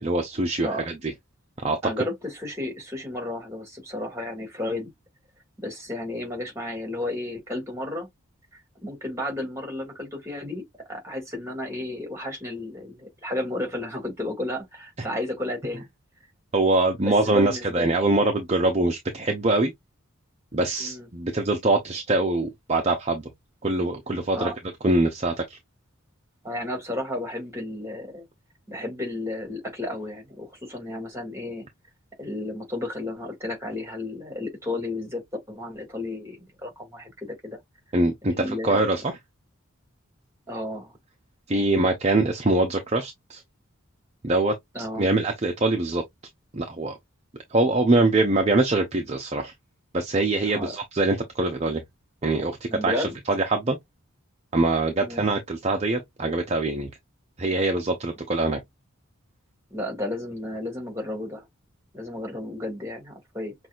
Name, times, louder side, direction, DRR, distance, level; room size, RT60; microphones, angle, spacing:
voice 1, 0.0-0.9 1.6-1.8 16.5-19.7 20.5-23.3 23.6-24.5 24.8-25.6 37.9-39.1 41.5-43.4 44.2-44.5 45.0-46.0 46.5-46.9 47.5-49.5 49.9-51.8 52.2-53.8 54.5-56.9 57.4-58.6, right 2 dB, 30° right, 0.7 m, -23 dB
voice 2, 1.8-4.9 5.6-8.1 8.5-10.6 10.9-15.9 17.0-17.9 20.8-21.1 24.3-24.6 26.4-28.2 28.7-31.7 32.2-37.6 38.3-38.9 40.5-41.0 44.7-45.1 50.5-50.8 52.7-53.2 55.0-55.3 59.7-61.5 61.9-63.5, left 1 dB, 15° right, 2.1 m, -33 dB
6.0 x 2.6 x 2.4 m
head